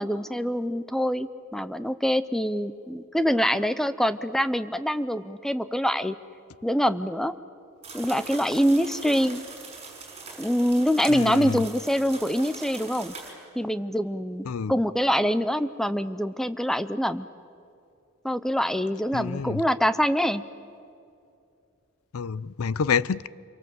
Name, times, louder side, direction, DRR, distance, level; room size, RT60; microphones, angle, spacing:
voice 1, 0.0-6.2 6.6-7.3 7.9-9.4 10.4-13.1 13.6-17.3 18.2-20.4, equal, ahead, 0.6 m, -25 dB
sound 1, 7.8-13.3, right 4 dB, 30° right, 6.0 m, -42 dB
voice 2, 11.1-11.6 14.5-14.8 19.1-19.6 22.1-23.3, left 6 dB, 80° left, 0.5 m, -28 dB
27.0 x 23.5 x 7.8 m
head